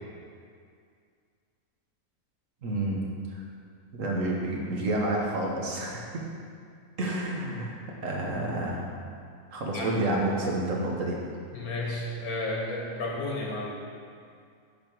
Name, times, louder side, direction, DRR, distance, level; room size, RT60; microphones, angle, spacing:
voice 1, 2.6-3.4 3.9-6.2 7.0-7.8 8.0-8.9 9.5-11.2, right 1 dB, 65° right, -2 dB, 1.5 m, -29 dB
voice 2, 11.5-13.8, left 2 dB, 90° left, -2 dB, 1.9 m, -32 dB
10.5 x 4.4 x 4.6 m, 2.3 s
omnidirectional pair, 1.5 m